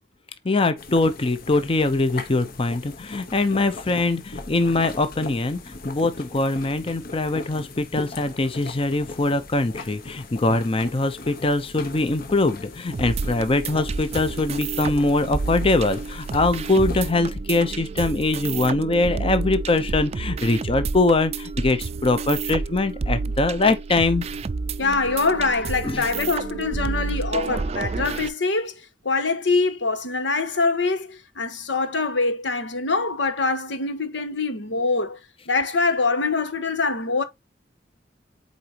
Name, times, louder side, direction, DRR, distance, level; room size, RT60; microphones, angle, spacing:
voice 1, 0.4-24.2 25.8-26.1, left 2 dB, 30° left, 0.7 m, -22 dB
sound 1, 0.8-17.1, left 3 dB, 55° left, 1.1 m, -39 dB
sound 2, 12.9-28.3, right 4 dB, 35° right, 0.4 m, -30 dB
voice 2, 24.8-35.2 35.5-37.2, left 3 dB, 80° left, 1.2 m, -24 dB
8.4 x 4.0 x 2.9 m
head